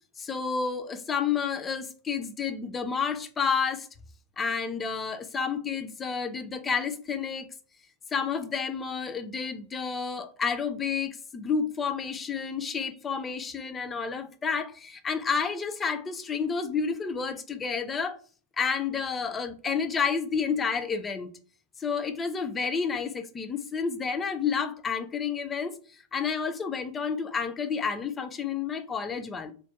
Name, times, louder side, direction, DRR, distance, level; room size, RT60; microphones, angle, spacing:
voice 1, 0.2-3.9 4.4-7.5 8.1-18.2 18.6-21.3 21.8-29.5, left 6 dB, 20° left, 0.3 m, -30 dB
2.3 x 2.1 x 2.8 m
figure-of-eight pair, 90°, 0 cm